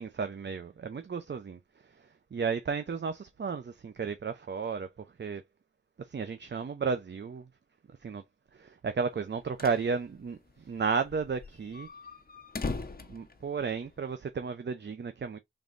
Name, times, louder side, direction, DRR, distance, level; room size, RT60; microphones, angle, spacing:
voice 1, 0.0-1.6 2.0-4.9 5.2-5.4 6.0-7.5 8.0-8.2 8.5-11.9 13.1-15.4, right 5 dB, 60° right, 0.7 m, -33 dB
sound 1, 9.2-9.9 10.2-10.3 10.5-10.6 11.1-14.1, left 3 dB, 45° left, 1.1 m, -39 dB
5.4 x 3.6 x 2.6 m
cardioid pair, 55°, 21 cm